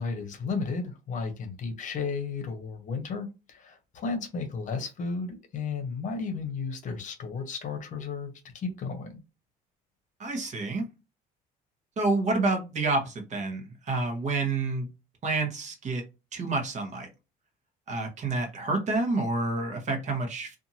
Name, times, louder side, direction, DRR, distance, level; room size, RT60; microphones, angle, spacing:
voice 1, 0.0-9.2, left 4 dB, 45° left, 6 dB, 0.8 m, -34 dB
voice 2, 10.2-10.8 12.0-14.9 15.2-16.0 16.3-17.1 17.9-20.6, right 3 dB, 40° right, 3 dB, 1.0 m, -28 dB
2.6 x 2.5 x 2.8 m, 0.27 s
cardioid pair, 115°, 18 cm